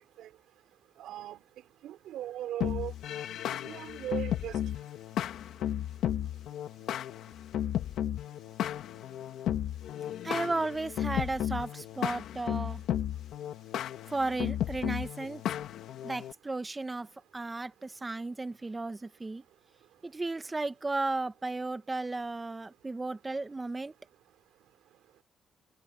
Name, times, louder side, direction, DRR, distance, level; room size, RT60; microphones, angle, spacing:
voice 1, 1.0-1.4 1.8-2.9 3.5-4.6, right 12 dB, 85° right, 4.4 m, -38 dB
sound 1, 2.6-16.3, left 11 dB, 80° left, 2.0 m, -34 dB
voice 2, 10.2-12.8 14.1-15.4 16.0-17.1 17.3-19.4 20.0-23.9, right 3 dB, 20° right, 1.3 m, -34 dB
cardioid pair, 90°, 0 cm